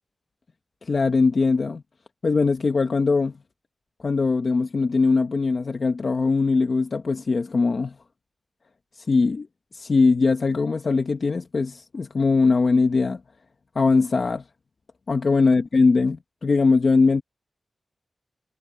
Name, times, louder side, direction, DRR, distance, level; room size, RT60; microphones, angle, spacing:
voice 1, 0.8-1.8 2.2-3.3 4.0-7.9 8.9-9.5 9.7-13.2 13.7-14.4 15.1-17.2, left 4 dB, 45° left, 1.0 m, -21 dB
wide cardioid pair, 145°, 0 cm